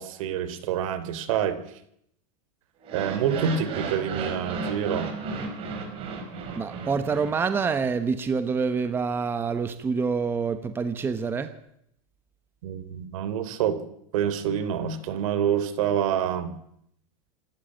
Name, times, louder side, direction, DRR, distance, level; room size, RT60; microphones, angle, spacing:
voice 1, 0.0-1.8 2.9-5.1 12.6-13.8 14.1-16.5, right 9 dB, 65° right, 13 dB, 3.2 m, -27 dB
sound 1, 2.8-8.0, right 4 dB, 30° right, 4.5 m, -34 dB
voice 2, 6.5-11.5, right 5 dB, 10° right, 10 dB, 1.0 m, -26 dB
27.0 x 13.5 x 8.7 m, 0.75 s
supercardioid pair, 165°, 18 cm